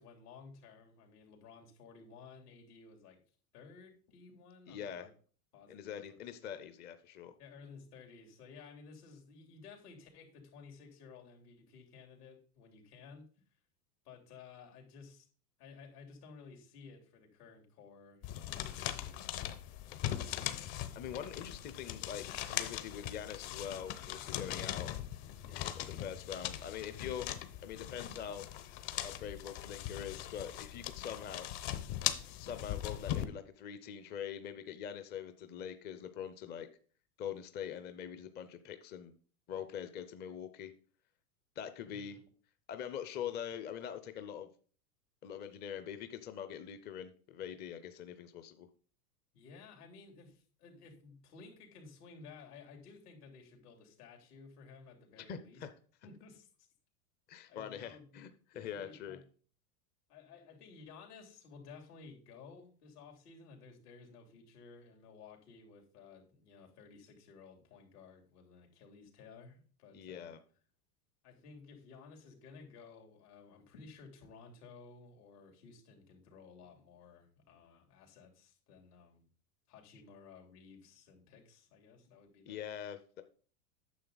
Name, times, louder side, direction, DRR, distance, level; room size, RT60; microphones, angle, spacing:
voice 1, 0.0-3.2 3.5-5.1 5.5-6.2 7.4-13.2 14.0-15.3 15.6-20.1 25.4-25.7 41.9-42.2 49.3-55.6 56.0-56.7 57.5-59.2 60.1-70.4 71.2-79.2 79.7-83.0, left 5 dB, 75° left, 3.2 m, -55 dB
voice 2, 4.7-5.1 5.7-7.3 20.9-24.9 26.0-27.3 27.6-28.5 29.0-31.5 32.4-36.7 37.2-39.1 39.5-40.7 41.6-42.2 42.7-44.5 45.2-48.7 55.3-55.7 57.3-58.3 58.5-59.2 69.9-70.4 82.5-83.2, left 9 dB, 20° left, 0.6 m, -43 dB
sound 1, 18.2-33.2, left 12 dB, 50° left, 1.1 m, -40 dB
9.4 x 6.7 x 3.9 m
hypercardioid pair, 120°, 47 cm